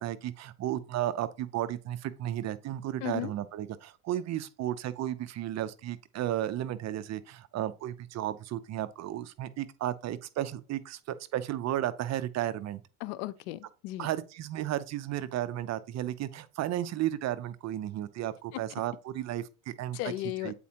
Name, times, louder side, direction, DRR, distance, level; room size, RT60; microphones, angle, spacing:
voice 1, 0.0-12.8 14.0-20.0 20.4-20.5, right 12 dB, 40° right, 0.5 m, -34 dB
voice 2, 3.0-3.3 13.0-14.1 19.9-20.5, left 16 dB, 80° left, 0.6 m, -35 dB
8.3 x 4.3 x 2.9 m
supercardioid pair, 100°, 43 cm